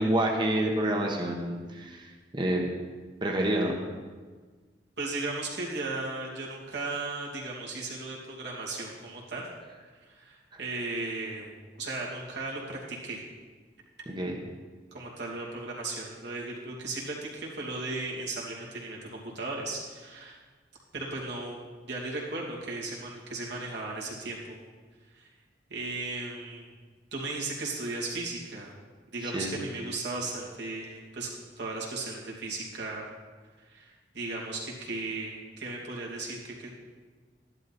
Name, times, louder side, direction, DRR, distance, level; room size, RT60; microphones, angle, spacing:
voice 1, 0.0-2.1 2.3-2.6 3.2-3.7 14.1-14.4 29.2-29.5, right 1 dB, 25° right, 0 dB, 1.2 m, -28 dB
voice 2, 5.0-9.5 10.1-11.5 11.8-13.2 14.9-20.4 20.9-24.6 25.1-25.3 25.7-26.7 27.1-28.7 29.1-31.3 31.6-33.1 33.7-36.7, right 2 dB, 65° right, -3 dB, 2.7 m, -36 dB
12.5 x 11.0 x 4.3 m, 1.4 s
head